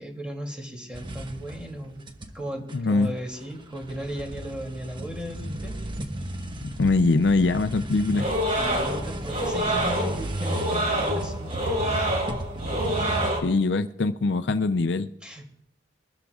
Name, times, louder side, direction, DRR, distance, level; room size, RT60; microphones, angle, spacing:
voice 1, 0.0-2.0 2.3-5.8 8.5-11.9 15.2-15.4, equal, 5° right, 1 dB, 2.7 m, -36 dB
sound 1, 0.9-2.4 2.7-13.3, right 1 dB, 30° right, 1.0 m, -34 dB
voice 2, 2.7-3.1 6.6-8.3 13.4-15.1, left 3 dB, 70° left, 10 dB, 0.5 m, -23 dB
sound 2, 8.1-13.4, right 1 dB, 45° right, 2.7 m, -27 dB
23.5 x 13.0 x 2.4 m, 0.70 s
head